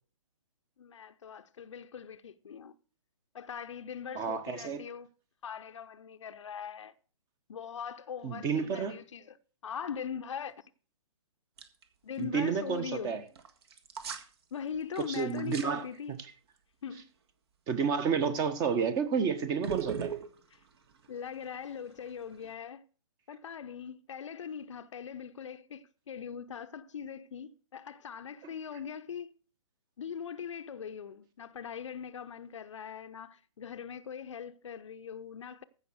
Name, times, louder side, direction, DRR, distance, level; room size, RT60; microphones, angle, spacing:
voice 1, 0.8-2.7 3.3-5.1 5.4-6.9 7.5-9.4 9.6-10.7 12.0-13.2 14.5-16.2 16.8-17.1 20.5-20.6 21.1-22.8 23.3-29.3 30.0-35.6, left 7 dB, 60° left, 0.8 m, -41 dB
voice 2, 4.1-4.8 8.2-8.9 12.2-13.2 15.1-15.9 17.7-20.1, right 6 dB, 20° right, 1.3 m, -30 dB
sound 1, 11.6-11.8 12.2-12.3 13.4-14.3 14.7-15.7 18.4-18.6 19.6-22.5, right 7 dB, 45° right, 1.7 m, -39 dB
15.5 x 5.8 x 6.3 m
figure-of-eight pair, 135°, 18 cm